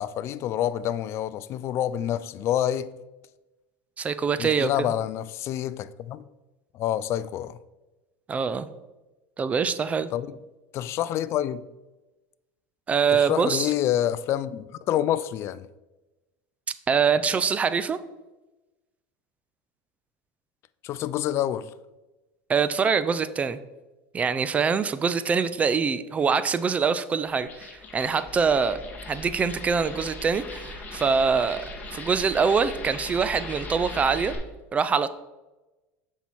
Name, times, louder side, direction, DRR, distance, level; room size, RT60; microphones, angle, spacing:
voice 1, 0.0-2.9 4.4-6.3 6.7-7.6 10.1-10.4 10.7-11.6 13.1-15.7 20.8-21.7, left 11 dB, 45° left, 0.4 m, -27 dB
voice 2, 4.0-4.9 8.3-8.7 9.4-10.1 12.9-13.7 16.9-18.0 22.5-23.6 24.1-28.8 29.1-31.7 31.9-34.3 34.7-35.1, right 5 dB, 20° right, 0.4 m, -24 dB
sound 1, 27.3-34.4, left 2 dB, 25° left, 1.7 m, -39 dB
7.2 x 5.6 x 4.6 m
supercardioid pair, 130°, 6 cm